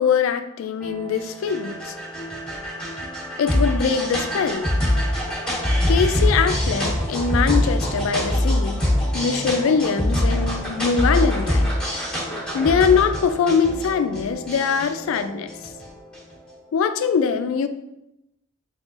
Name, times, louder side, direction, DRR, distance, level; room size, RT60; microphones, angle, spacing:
voice 1, 0.0-2.0 3.4-4.7 5.9-8.8 9.1-11.8 12.5-15.5 16.7-17.7, left 6 dB, 70° left, 10 dB, 0.3 m, -22 dB
sound 1, 0.8-16.3, left 1 dB, 5° left, 1.2 m, -24 dB
3.8 x 3.6 x 2.4 m, 0.87 s
head